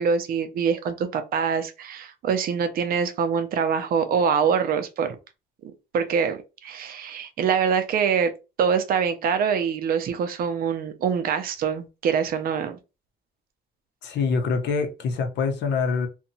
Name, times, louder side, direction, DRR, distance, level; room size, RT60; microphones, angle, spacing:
voice 1, 0.0-5.2 5.9-8.3 8.6-12.8, right 6 dB, 55° right, 0.4 m, -24 dB
voice 2, 14.0-16.1, left 5 dB, 75° left, 0.6 m, -25 dB
2.7 x 2.2 x 2.6 m
cardioid pair, 175°, 18 cm